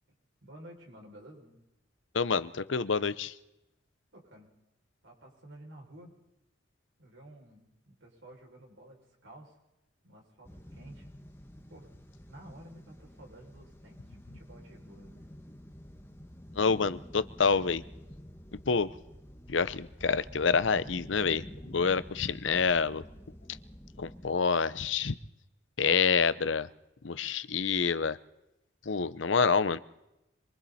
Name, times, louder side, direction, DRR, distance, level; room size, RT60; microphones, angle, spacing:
voice 1, 0.4-1.6 4.1-4.5 5.0-6.1 7.0-9.6 10.0-11.1 11.7-11.9 12.3-15.3, right 1 dB, 85° right, -1 dB, 6.4 m, -52 dB
voice 2, 2.1-3.3 16.5-17.8 18.5-18.9 19.5-23.0 24.0-25.2 25.8-26.7 27.0-28.2 28.9-29.8, left 5 dB, 80° left, 16 dB, 0.8 m, -27 dB
sound 1, 10.4-24.4, equal, 10° left, 1.4 m, -49 dB
26.5 x 23.5 x 4.3 m, 0.91 s
head